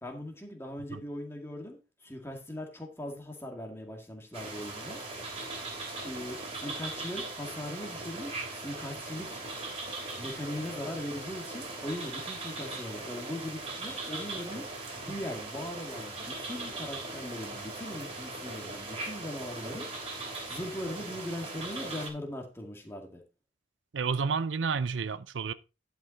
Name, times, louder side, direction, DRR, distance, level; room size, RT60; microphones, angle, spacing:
voice 1, 0.0-5.0 6.0-9.4 10.2-14.7 14.9-19.9 20.5-23.2, left 1 dB, 15° left, 2.0 m, -40 dB
sound 1, 4.3-22.1, right 2 dB, 30° right, 2.9 m, -39 dB
voice 2, 23.9-25.5, right 5 dB, 75° right, 0.5 m, -30 dB
11.0 x 5.8 x 4.2 m
head